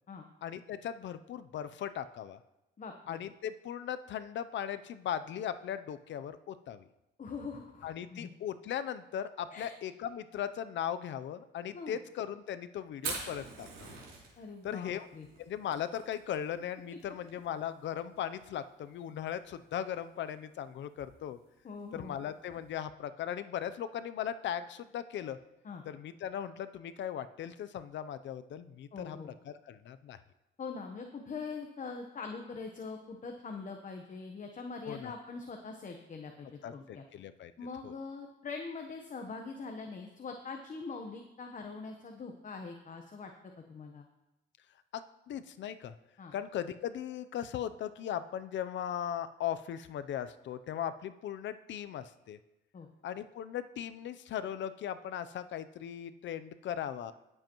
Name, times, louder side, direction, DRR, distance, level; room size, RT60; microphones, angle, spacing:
voice 1, 0.4-2.4 3.1-6.9 7.8-14.0 14.6-15.1 15.4-21.4 21.9-25.4 25.9-29.2 29.5-30.2 34.8-35.1 36.6-37.5 37.8-37.9 44.9-45.9 46.3-52.4 53.0-57.1, left 9 dB, 65° left, 12 dB, 0.6 m, -38 dB
voice 2, 2.8-3.2 7.2-8.3 9.5-9.7 11.7-12.0 14.4-15.3 21.6-22.2 25.6-25.8 28.9-29.3 30.6-37.0 37.6-43.3 43.7-44.1 46.2-46.3 52.7-52.9, left 4 dB, 40° left, 4 dB, 1.0 m, -43 dB
Fire, 12.9-22.7, right 5 dB, 85° right, 3.2 m, -47 dB
18.0 x 7.7 x 3.0 m, 0.93 s
cardioid pair, 90°, 20 cm